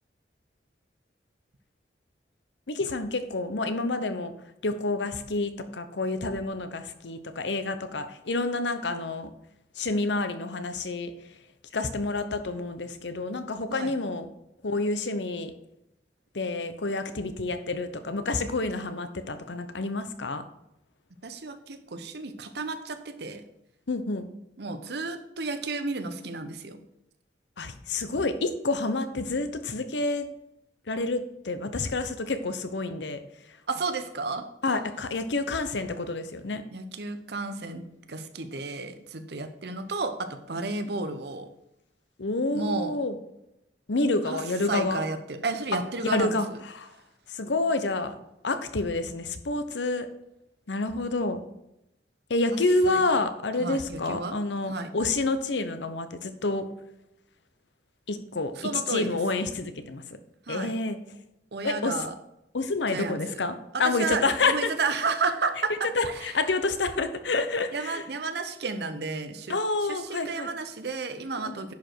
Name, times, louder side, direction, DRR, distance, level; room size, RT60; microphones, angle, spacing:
voice 1, 2.7-4.3 4.6-9.3 9.8-11.1 11.7-14.2 14.6-15.5 16.3-20.4 23.9-24.3 27.6-30.2 30.9-33.2 34.6-36.6 42.2-43.1 43.9-45.0 46.0-46.5 46.7-46.9 47.3-48.1 48.4-50.1 50.7-51.4 52.3-56.6 58.1-58.5 58.9-60.0 60.5-61.0 61.6-61.9 62.5-63.5 63.8-64.7 66.0-68.0 69.5-70.5 71.5-71.6, left 3 dB, 85° left, 10 dB, 0.9 m, -28 dB
voice 2, 21.2-23.4 24.6-26.9 33.7-34.5 36.7-37.8 38.1-41.5 42.5-42.9 44.2-46.6 52.5-52.6 52.9-53.0 53.6-54.4 54.7-54.9 58.6-59.2 60.5-60.7 61.5-62.1 62.9-63.4 63.7-66.4 67.7-71.7, right 3 dB, 65° right, 9 dB, 0.9 m, -32 dB
10.5 x 5.1 x 4.6 m, 0.84 s
head